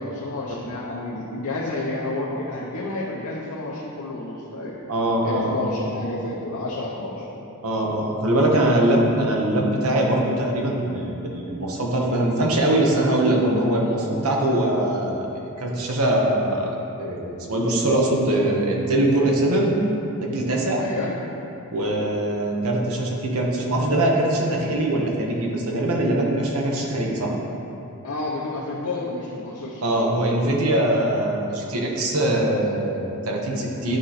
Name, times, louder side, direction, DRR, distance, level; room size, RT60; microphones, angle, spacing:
voice 1, 0.0-4.8 5.2-7.3 20.8-21.1 28.0-29.8, left 2 dB, 85° left, -5 dB, 0.8 m, -30 dB
voice 2, 4.9-5.7 7.6-19.7 20.2-20.8 21.7-27.3 29.8-34.0, right 1 dB, 75° right, -1 dB, 1.1 m, -22 dB
10.5 x 3.8 x 4.3 m, 2.9 s
head